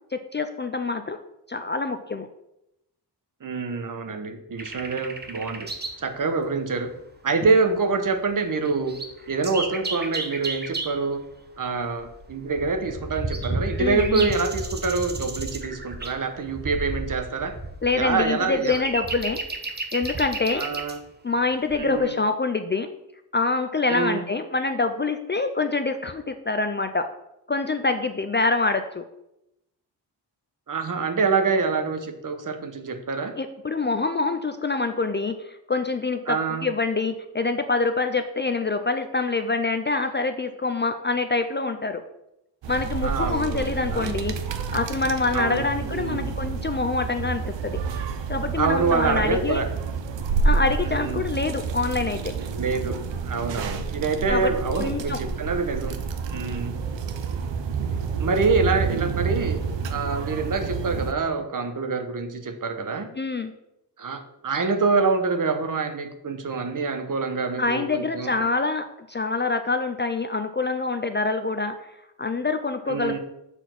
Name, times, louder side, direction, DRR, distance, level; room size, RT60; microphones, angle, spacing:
voice 1, 0.1-1.2 1.5-2.3 13.8-14.3 17.8-19.4 19.7-20.6 21.2-22.9 23.3-27.1 27.5-29.1 33.4-42.0 42.7-44.4 44.7-47.8 48.3-49.6 50.4-52.3 54.3-55.2 63.2-63.5 67.6-71.9 72.2-73.2, left 3 dB, 25° left, 8 dB, 0.4 m, -26 dB
voice 2, 3.4-5.7 6.0-6.9 7.2-8.9 9.3-11.2 11.6-17.5 17.9-18.8 20.6-21.0 21.8-22.1 23.9-24.2 30.7-33.3 36.3-36.7 43.0-44.2 45.3-46.3 48.6-49.7 50.8-51.3 52.6-53.0 53.2-55.9 56.3-56.7 58.2-59.6 59.9-63.1 64.0-68.3 72.9-73.2, right 4 dB, 45° right, 8 dB, 1.0 m, -26 dB
sound 1, 4.6-6.1 6.3-6.4 7.1-7.2 7.4-7.8 8.2-8.3 8.6-11.0 11.7-21.0 21.7-22.0, right 2 dB, 25° right, 0.9 m, -33 dB
sound 2, 42.6-61.1, right 5 dB, 80° right, 0.8 m, -29 dB
7.0 x 4.2 x 5.8 m, 0.84 s
wide cardioid pair, 105°, 43 cm